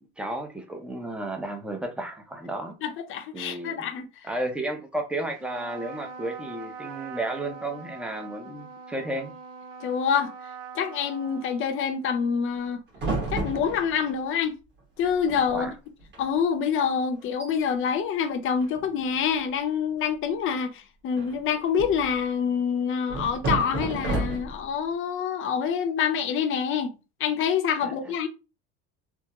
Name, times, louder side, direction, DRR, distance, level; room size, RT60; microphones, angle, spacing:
voice 1, 0.2-2.8 3.3-3.9 4.2-9.3 15.5-15.7 27.8-27.9, right 1 dB, 5° right, 0.5 m, -33 dB
voice 2, 2.8-4.1 9.8-10.3 10.7-12.8 13.3-14.5 15.0-15.7 16.2-26.9 27.2-28.3, left 7 dB, 45° left, 0.7 m, -26 dB
Trumpet, 5.3-12.2, right 5 dB, 80° right, 0.7 m, -42 dB
sound 1, 12.9-14.1 15.0-15.1 15.3-15.6 16.0-16.2 16.7-16.8 17.2-17.5 18.6-19.2 21.2-22.1 23.1-24.7, right 2 dB, 35° right, 1.4 m, -31 dB
3.5 x 2.0 x 2.9 m
cardioid pair, 130°, 30 cm